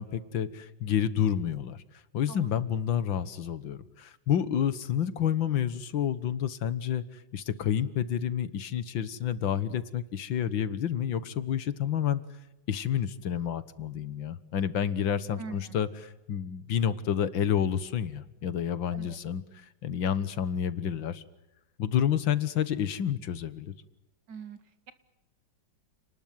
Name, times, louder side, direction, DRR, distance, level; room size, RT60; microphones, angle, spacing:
voice 1, 0.0-1.8 2.1-7.0 7.3-12.2 12.7-21.2 21.8-23.7, left 9 dB, 80° left, 15 dB, 2.1 m, -29 dB
voice 2, 24.3-24.6, right 6 dB, 65° right, 12 dB, 2.3 m, -41 dB
29.5 x 20.0 x 9.4 m, 0.92 s
omnidirectional pair, 2.1 m